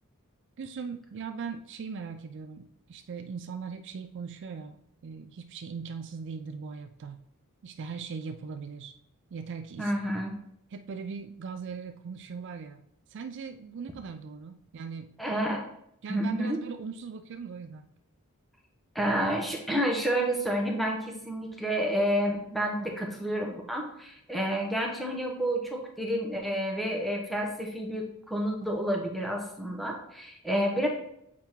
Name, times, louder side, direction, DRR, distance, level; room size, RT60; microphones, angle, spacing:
voice 1, 0.6-7.2 7.6-8.9 9.3-9.9 10.7-12.8 13.1-15.1 16.0-17.9, right 5 dB, 55° right, 8 dB, 0.4 m, -39 dB
voice 2, 9.8-10.3 15.2-15.6 16.1-16.6 18.9-30.9, equal, ahead, 0 dB, 0.9 m, -29 dB
7.3 x 3.5 x 4.5 m, 0.76 s
head